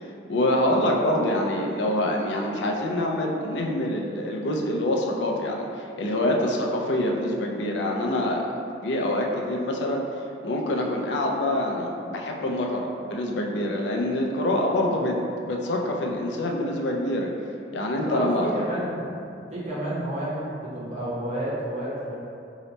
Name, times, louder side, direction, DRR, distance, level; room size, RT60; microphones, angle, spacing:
voice 1, 0.3-8.5 8.8-10.0 10.4-15.2 15.4-17.3 17.7-18.5, left 1 dB, 85° left, 0 dB, 0.4 m, -25 dB
voice 2, 18.0-19.1 19.5-22.2, right 1 dB, 40° right, -7 dB, 0.8 m, -30 dB
2.8 x 2.1 x 4.0 m, 2.6 s
head